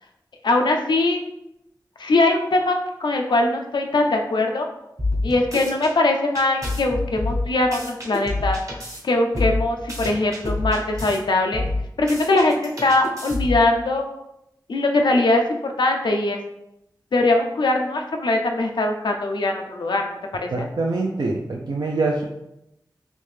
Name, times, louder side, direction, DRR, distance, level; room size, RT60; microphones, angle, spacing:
voice 1, 0.4-1.2 2.0-4.7 5.2-8.6 9.0-11.6 12.0-14.0 14.7-16.4 17.1-20.7, left 2 dB, 80° left, 3 dB, 0.4 m, -21 dB
sound 1, 5.0-5.9 6.3-9.0 9.3-11.2 11.5-13.7, left 2 dB, 45° right, 1.0 m, -27 dB
voice 2, 20.5-22.2, right 3 dB, 70° right, -1 dB, 0.4 m, -24 dB
3.4 x 2.7 x 3.2 m, 0.84 s
wide cardioid pair, 70°, 8 cm